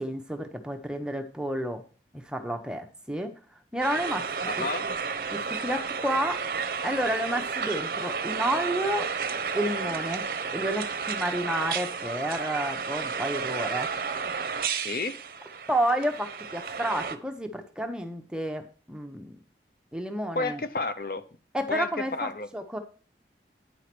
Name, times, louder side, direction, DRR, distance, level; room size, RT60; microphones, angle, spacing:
voice 1, 0.0-1.8 2.1-3.3 3.7-4.3 4.5-4.9 5.3-6.4 6.8-9.1 9.5-13.9 15.7-19.4 19.9-20.6 21.5-22.8, right 1 dB, 5° right, 5 dB, 0.9 m, -30 dB
sound 1, 3.8-17.2, right 5 dB, 50° right, 0.7 m, -32 dB
voice 2, 4.5-4.9 14.8-15.2 20.3-21.2 21.7-22.5, left 3 dB, 50° left, 11 dB, 0.7 m, -31 dB
9.4 x 4.8 x 6.0 m, 0.39 s
head